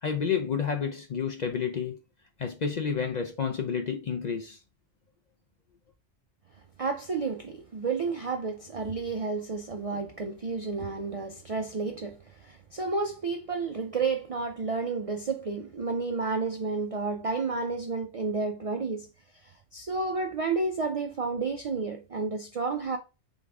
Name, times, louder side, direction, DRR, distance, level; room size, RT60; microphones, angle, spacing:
voice 1, 0.0-2.0 2.4-4.6, left 6 dB, 55° left, 0.5 m, -30 dB
voice 2, 6.8-19.1 19.4-23.0, right 4 dB, 55° right, 0.4 m, -31 dB
3.9 x 3.5 x 3.4 m
omnidirectional pair, 1.2 m